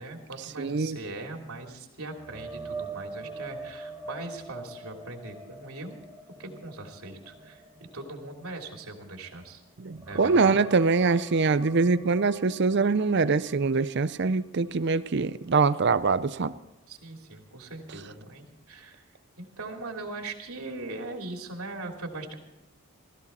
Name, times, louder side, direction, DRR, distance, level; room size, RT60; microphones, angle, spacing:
voice 1, 0.0-6.0 6.4-7.6 7.9-9.6 10.0-10.6 16.9-19.1 19.4-22.3, right 2 dB, 75° right, 2.9 m, -40 dB
voice 2, 0.6-1.0 9.8-16.5, right 4 dB, 50° right, 0.5 m, -24 dB
sound 1, 2.1-9.5 9.9-13.7 14.1-14.3 17.7-17.8, right 3 dB, 10° right, 1.0 m, -44 dB
16.0 x 16.0 x 4.3 m
head